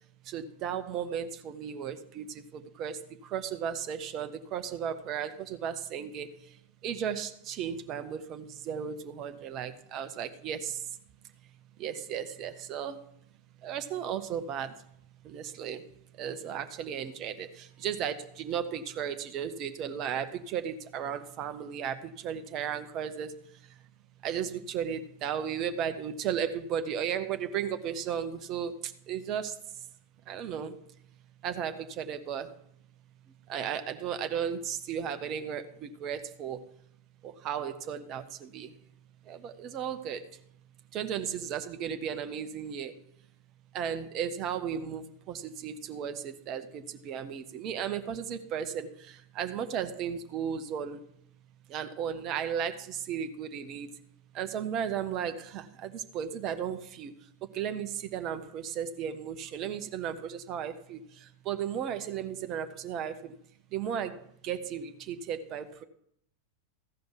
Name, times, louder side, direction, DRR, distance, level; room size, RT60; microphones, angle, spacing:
voice 1, 0.2-11.0 11.8-13.1 13.6-14.9 15.2-15.9 16.1-23.8 24.2-29.9 30.3-30.8 31.4-32.6 33.5-36.7 37.2-38.8 39.2-40.4 40.9-43.0 43.7-51.0 51.7-53.9 54.3-63.4 63.7-65.8, right 8 dB, 35° right, 9 dB, 0.8 m, -35 dB
15.0 x 5.2 x 5.9 m, 0.73 s
figure-of-eight pair, 90°, 0 cm